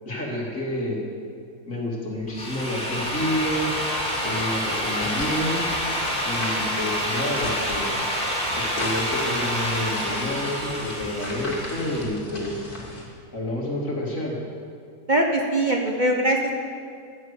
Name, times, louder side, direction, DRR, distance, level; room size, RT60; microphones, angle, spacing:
voice 1, 0.0-1.0 1.7-3.7 4.2-5.6 6.2-7.9 8.5-12.7 13.3-14.4, left 1 dB, 60° left, -2 dB, 3.2 m, -29 dB
Drill, 2.2-12.0, equal, 5° left, 3.1 m, -28 dB
sound 1, 2.9-13.0, left 1 dB, 85° left, 3.3 m, -38 dB
voice 2, 15.1-16.6, right 1 dB, 35° right, 2 dB, 1.2 m, -22 dB
12.0 x 11.5 x 8.2 m, 2.3 s
omnidirectional pair, 1.5 m